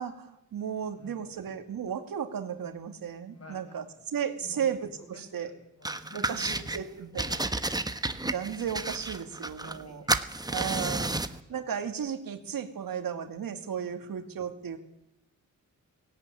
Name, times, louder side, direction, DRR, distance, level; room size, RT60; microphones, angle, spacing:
voice 1, 0.0-3.8 4.1-4.8 5.1-5.5 6.3-7.2 8.2-10.0 10.5-11.2 11.5-14.8, right 8 dB, 90° right, 6 dB, 2.4 m, -34 dB
voice 2, 0.9-1.4 3.3-4.7 5.0-8.4 9.5-11.6 13.8-14.2, left 1 dB, 45° left, 5 dB, 6.9 m, -52 dB
sound 1, 5.8-6.8 7.2-9.8 10.1-11.4, right 2 dB, 10° right, 1.2 m, -31 dB
18.0 x 17.5 x 9.8 m, 0.82 s
wide cardioid pair, 100°, 33 cm